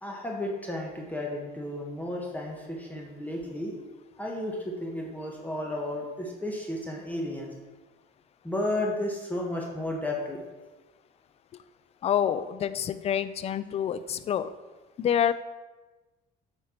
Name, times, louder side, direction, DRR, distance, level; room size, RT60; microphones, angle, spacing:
voice 1, 0.0-3.8 4.2-7.5 8.4-10.4, left 1 dB, 10° left, -1 dB, 1.3 m, -33 dB
voice 2, 12.0-14.5 15.0-15.3, left 9 dB, 40° left, 14 dB, 0.4 m, -27 dB
8.4 x 4.5 x 4.4 m, 1.2 s
cardioid pair, 110°, 17 cm